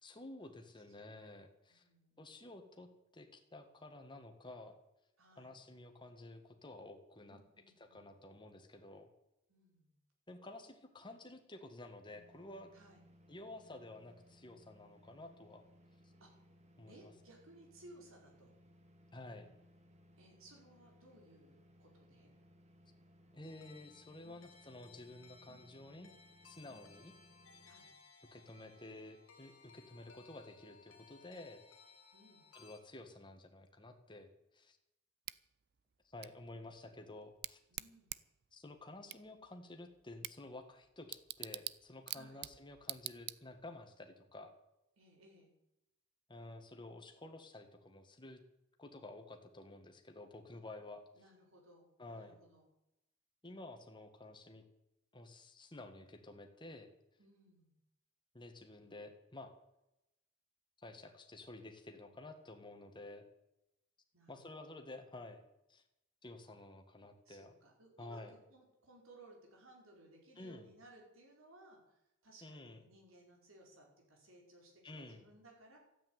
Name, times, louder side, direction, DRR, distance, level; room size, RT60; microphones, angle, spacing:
voice 1, 0.0-1.8 2.2-2.9 3.1-4.8 5.4-7.4 7.8-9.1 10.3-12.7 13.3-15.6 16.8-17.1 19.1-19.5 23.3-26.1 26.4-27.1 28.3-31.6 32.5-34.8 36.1-37.6 38.5-44.5 46.3-48.4 48.8-51.0 52.0-52.4 53.4-54.6 55.1-56.9 58.3-59.5 60.8-63.3 64.3-65.4 65.7-65.8 66.2-67.5 68.0-68.3 70.4-70.6 72.4-72.8 74.8-75.2, left 2 dB, 25° left, 5 dB, 1.7 m, -52 dB
voice 2, 1.7-2.3 5.2-5.5 7.2-8.1 9.5-9.9 12.7-13.0 16.2-16.4 16.9-18.5 20.2-22.3 25.5-25.7 26.7-26.9 27.6-27.9 32.1-32.5 37.7-38.2 42.1-42.5 45.0-45.5 51.1-51.9 52.1-52.7 57.2-57.7 64.1-64.8 67.2-75.8, right 1 dB, 75° right, 0 dB, 4.8 m, -61 dB
sound 1, 12.1-27.7, equal, 35° right, 1.7 m, -65 dB
sound 2, 23.4-32.8, left 5 dB, 80° left, 2.3 m, -62 dB
Bicycle / Tick, 35.2-43.8, right 15 dB, 50° right, 0.5 m, -48 dB
13.5 x 8.8 x 9.4 m, 0.88 s
head